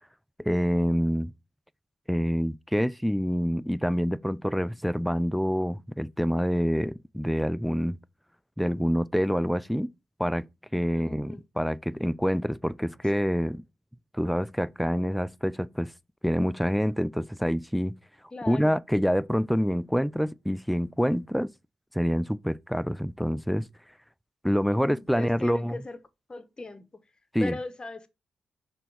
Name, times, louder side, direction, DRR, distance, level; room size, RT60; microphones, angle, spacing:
voice 1, 0.4-1.3 2.1-8.0 8.6-9.9 10.2-10.5 10.7-13.6 14.1-15.9 16.2-18.0 18.5-21.5 21.9-23.7 24.4-25.8 27.3-27.6, equal, ahead, 0.4 m, -26 dB
voice 2, 10.9-11.4 18.3-18.7 24.8-26.0 26.3-26.8 27.4-28.1, left 2 dB, 30° left, 1.0 m, -38 dB
5.9 x 3.5 x 4.6 m
supercardioid pair, 45°, 3 cm